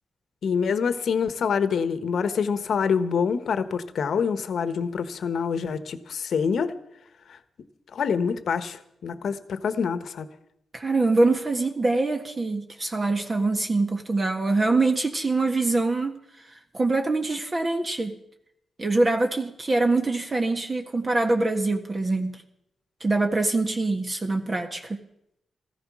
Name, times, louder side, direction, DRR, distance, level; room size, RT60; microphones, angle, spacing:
voice 1, 0.4-6.7 7.3-7.4 7.9-10.3, left 6 dB, 70° left, 12 dB, 1.2 m, -26 dB
voice 2, 10.7-16.2 16.7-18.1 18.8-22.4 23.0-25.0, right 2 dB, 30° right, 4 dB, 1.6 m, -24 dB
15.0 x 14.5 x 6.1 m, 0.78 s
cardioid pair, 85°, 0 cm